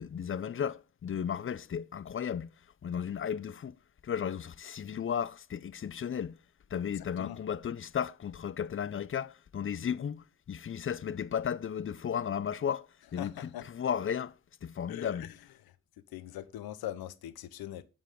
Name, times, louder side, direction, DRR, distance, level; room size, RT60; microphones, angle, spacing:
voice 1, 0.0-2.5 2.8-3.8 4.0-6.4 6.7-12.9 13.1-14.3 14.6-15.3, left 8 dB, 35° left, 0.6 m, -34 dB
voice 2, 7.0-7.4 13.2-13.6 14.9-15.3 16.1-17.8, left 12 dB, 75° left, 0.9 m, -41 dB
7.3 x 6.7 x 3.7 m
hypercardioid pair, 45°, 37 cm